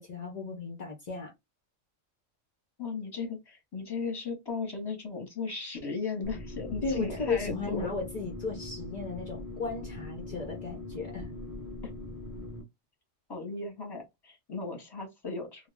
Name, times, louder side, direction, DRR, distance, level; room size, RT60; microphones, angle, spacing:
voice 1, 0.0-1.3 6.8-11.3, left 4 dB, 55° left, 0.4 m, -35 dB
voice 2, 2.8-7.9 13.3-15.7, left 4 dB, 20° left, 0.8 m, -36 dB
sound 1, 6.2-12.6, left 2 dB, 25° right, 0.4 m, -41 dB
2.2 x 2.1 x 3.2 m
omnidirectional pair, 1.3 m